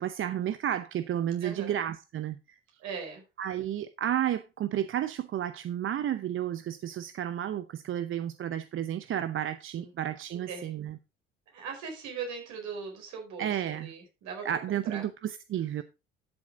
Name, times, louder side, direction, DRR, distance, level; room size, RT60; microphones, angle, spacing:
voice 1, 0.0-2.6 3.4-10.9 13.4-13.9 14.4-15.8, right 10 dB, 40° right, 0.7 m, -32 dB
voice 2, 1.4-1.8 2.8-3.2 9.7-9.9 10.3-10.7 11.5-15.0, right 5 dB, 65° right, 4.8 m, -40 dB
12.0 x 7.3 x 3.6 m
hypercardioid pair, 60°, 31 cm